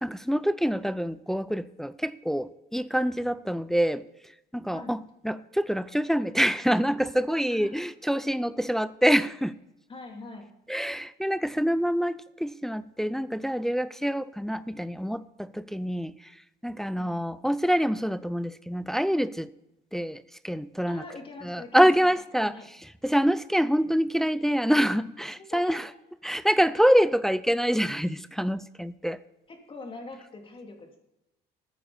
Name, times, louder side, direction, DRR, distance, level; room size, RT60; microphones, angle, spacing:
voice 1, 0.0-4.0 4.5-9.6 10.7-16.1 16.6-19.5 19.9-21.0 21.4-22.5 23.0-25.9 26.2-29.2, equal, ahead, 15 dB, 0.4 m, -26 dB
voice 2, 7.4-7.9 8.5-8.6 9.9-10.5 16.9-17.2 20.9-22.1 22.4-22.7 25.4-25.9 29.5-31.0, left 3 dB, 30° left, 3 dB, 2.8 m, -43 dB
14.5 x 9.3 x 4.2 m, 0.89 s
cardioid pair, 110°, 17 cm